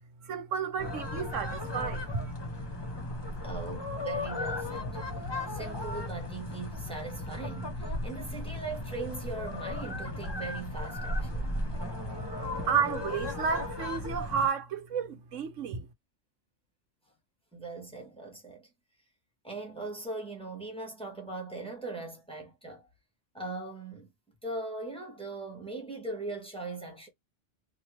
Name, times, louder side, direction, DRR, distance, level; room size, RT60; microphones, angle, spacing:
voice 1, 0.2-2.3 12.1-12.2 12.7-15.9, right 6 dB, 85° right, 1.2 m, -31 dB
sound 1, 0.8-14.5, left 2 dB, 25° left, 0.8 m, -36 dB
voice 2, 3.4-5.0 5.5-11.5 12.4-12.7 17.5-18.7 19.4-22.9 23.3-24.1 24.4-27.1, right 3 dB, 5° left, 1.4 m, -40 dB
3.0 x 2.8 x 3.0 m
omnidirectional pair, 1.3 m